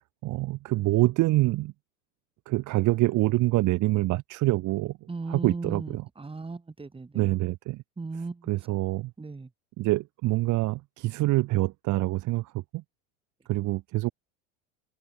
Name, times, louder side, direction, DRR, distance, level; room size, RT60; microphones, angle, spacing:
voice 1, 0.2-1.7 2.5-5.0 5.3-6.0 7.1-7.8 8.5-9.1 9.8-12.8 13.5-14.1, right 18 dB, 50° right, 2.4 m, -26 dB
voice 2, 5.1-7.4 8.0-8.5 9.2-9.5, right 3 dB, 15° right, 7.5 m, -37 dB
open air
supercardioid pair, 105°, 38 cm